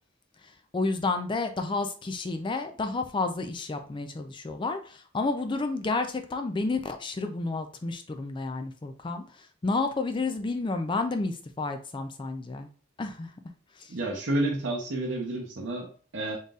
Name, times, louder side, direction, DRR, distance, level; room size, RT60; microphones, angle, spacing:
voice 1, 0.7-12.7 13.0-13.3 13.8-13.9, left 3 dB, 25° left, 6 dB, 0.4 m, -31 dB
voice 2, 13.9-16.4, right 2 dB, 65° right, -2 dB, 0.7 m, -30 dB
3.9 x 3.9 x 2.4 m, 0.41 s
head